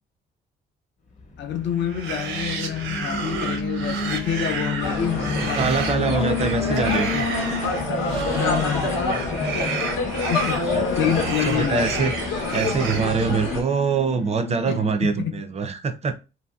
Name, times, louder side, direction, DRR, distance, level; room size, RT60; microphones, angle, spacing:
voice 1, 1.4-6.3 8.3-9.3 10.1-10.7 11.0-12.1 14.7-15.4, left 10 dB, 65° left, 0.5 m, -27 dB
Alarm, 1.5-14.9, left 5 dB, 35° left, 0.7 m, -33 dB
sound 1, 1.8-13.8, right 5 dB, 80° right, 0.6 m, -32 dB
sound 2, 4.8-13.6, left 2 dB, 80° left, 0.9 m, -27 dB
voice 2, 5.5-7.3 10.7-12.1 12.5-16.1, right 5 dB, 35° right, 0.4 m, -24 dB
2.9 x 2.7 x 2.2 m
cardioid pair, 90°, 20 cm